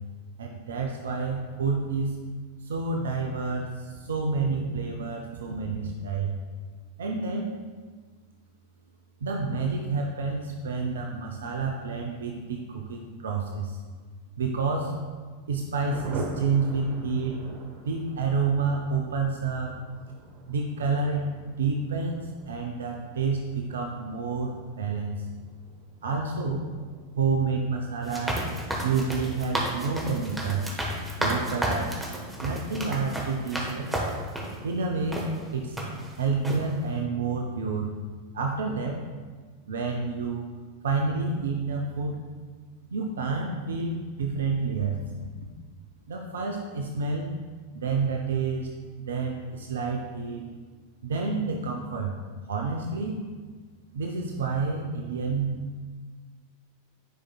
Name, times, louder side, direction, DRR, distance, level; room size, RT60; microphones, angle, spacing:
voice 1, 0.4-2.2 2.6-6.4 7.0-7.5 9.2-13.8 14.4-15.0 15.5-17.4 17.9-19.7 20.5-21.3 21.6-25.3 26.0-26.7 27.2-28.5 28.8-30.8 31.2-31.9 32.4-33.9 34.6-35.8 36.2-37.9 38.3-39.0 39.7-40.5 40.8-42.2 42.9-45.0 46.1-47.3 47.7-48.7 49.0-50.4 51.0-52.1 52.5-53.2 53.9-55.6, right 4 dB, 65° right, 2 dB, 0.5 m, -29 dB
Thunder, 15.9-32.0 32.3-32.4 32.7-32.8 33.1-33.5, right 2 dB, 45° right, 0.9 m, -44 dB
sound 1, 28.0-34.6 35.1-35.3 35.8-36.1 36.4-36.6, right 1 dB, 5° right, 1.1 m, -31 dB
10.0 x 5.0 x 2.2 m, 1.5 s
figure-of-eight pair, 90°, 0 cm